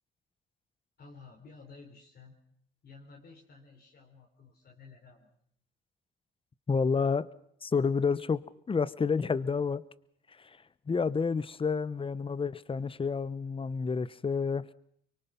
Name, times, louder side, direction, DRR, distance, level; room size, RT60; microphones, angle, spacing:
voice 1, 1.0-2.4 2.8-5.3, left 4 dB, 50° left, 3.9 m, -53 dB
voice 2, 6.7-7.3 7.6-9.8 10.3-14.7, left 5 dB, 25° left, 0.9 m, -30 dB
24.0 x 24.0 x 5.9 m
cardioid pair, 90°, 20 cm